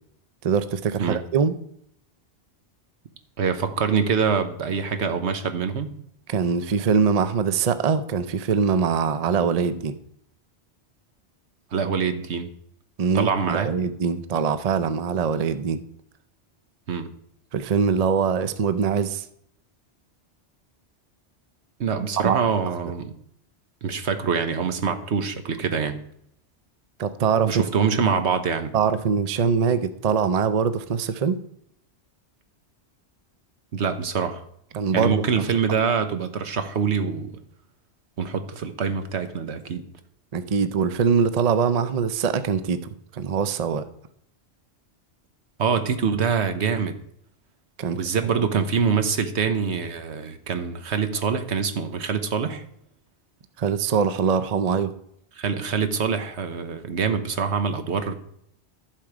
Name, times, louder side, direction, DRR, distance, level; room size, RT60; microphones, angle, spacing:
voice 1, 0.4-1.5 6.3-10.0 13.0-15.8 17.5-19.2 22.2-22.4 27.0-27.6 28.7-31.4 34.7-35.2 40.3-42.8 43.1-43.8 47.8-48.0 53.6-54.9, right 6 dB, 45° right, 11 dB, 0.6 m, -23 dB
voice 2, 3.4-5.9 11.7-12.5 13.1-13.7 16.9-17.1 21.8-23.1 23.8-26.0 27.5-28.7 33.7-34.4 34.9-37.3 38.2-39.8 45.6-47.0 47.9-52.6 55.4-58.1, right 6 dB, 75° right, 9 dB, 1.3 m, -25 dB
11.5 x 7.4 x 4.9 m, 0.71 s
omnidirectional pair, 1.2 m